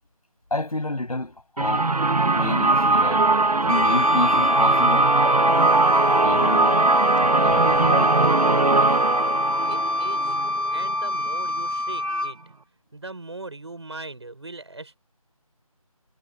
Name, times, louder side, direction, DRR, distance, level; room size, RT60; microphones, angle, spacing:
voice 1, 0.5-1.9 2.3-3.3 3.6-5.1 6.2-6.8 7.4-8.2, left 2 dB, 80° left, 7.8 m, -29 dB
sound 1, 1.6-11.3, right 3 dB, 85° right, 1.3 m, -21 dB
sound 2, 1.7-8.3, left 7 dB, 15° left, 7.3 m, -51 dB
Wind instrument woodwind instrument, 3.7-12.3, left 2 dB, 65° right, 2.0 m, -24 dB
voice 2, 9.6-10.4 10.7-12.4 12.9-15.0, right 2 dB, 50° right, 6.4 m, -39 dB
figure-of-eight pair, 180°, 19 cm